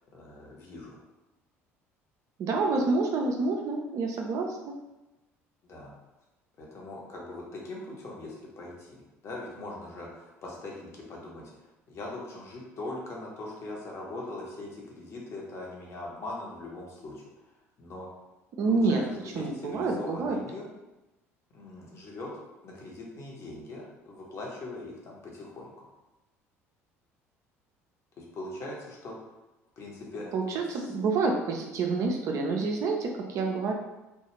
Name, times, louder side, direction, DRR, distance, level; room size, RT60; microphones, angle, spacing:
voice 1, 0.1-1.0 5.6-5.9 6.6-11.5 11.9-17.2 17.8-18.1 18.7-19.0 19.3-20.6 21.5-22.3 22.6-25.9 28.2-29.1 29.8-30.3 30.5-30.9, left 2 dB, 35° left, -3 dB, 0.8 m, -41 dB
voice 2, 2.4-4.8 18.6-19.0 19.4-20.4 30.3-33.7, right 3 dB, 45° right, 2 dB, 0.4 m, -28 dB
2.3 x 2.2 x 3.0 m, 1.0 s
figure-of-eight pair, 55°, 8 cm